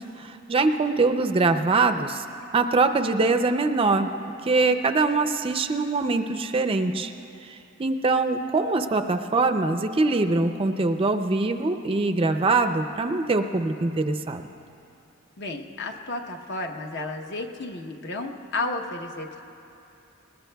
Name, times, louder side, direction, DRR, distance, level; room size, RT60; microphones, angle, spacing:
voice 1, 0.0-2.2 2.5-4.1 4.4-7.1 7.4-14.5, right 3 dB, 25° right, 7 dB, 0.4 m, -23 dB
voice 2, 15.4-19.4, left 2 dB, 55° left, 3 dB, 0.9 m, -32 dB
20.5 x 20.0 x 2.3 m, 2.7 s
head